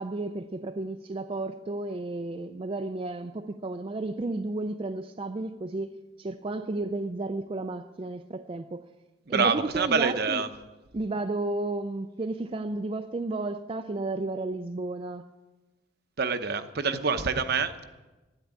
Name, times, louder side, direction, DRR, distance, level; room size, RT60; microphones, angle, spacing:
voice 1, 0.0-8.9 9.3-10.4 10.9-15.2, right 2 dB, 30° right, 0.4 m, -32 dB
voice 2, 9.3-10.5 16.2-17.8, right 5 dB, 50° right, 0.8 m, -26 dB
12.5 x 10.0 x 8.4 m
head